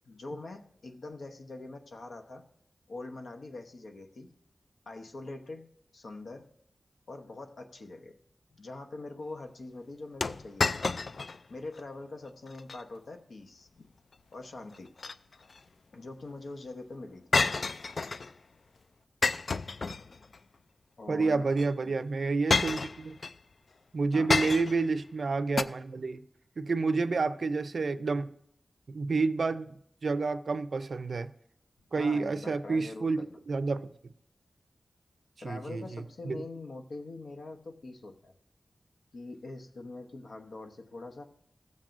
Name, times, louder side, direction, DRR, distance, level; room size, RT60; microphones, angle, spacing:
voice 1, 0.0-2.4 2.9-4.3 4.9-5.7 5.9-6.5 7.1-8.2 8.5-10.9 11.5-13.9 14.3-14.9 15.9-17.4 21.0-21.5 21.8-21.9 24.1-24.3 31.9-33.4 35.4-38.3 39.1-41.2, left 2 dB, 80° left, 4 dB, 0.9 m, -43 dB
sound 1, 10.2-11.4 11.8-11.9 12.5-12.8 14.7-15.6 17.3-18.3 19.2-20.4 21.5-21.7 22.5-23.4 24.3-24.9 25.6-25.7, left 4 dB, 65° left, 0.3 m, -29 dB
voice 2, 21.1-23.2 23.9-26.2 26.6-28.3 28.9-29.8 30.0-31.3 31.9-33.9 35.4-36.4, right 4 dB, 70° right, 12 dB, 0.5 m, -29 dB
17.5 x 7.4 x 2.6 m, 0.72 s
wide cardioid pair, 95°, 0 cm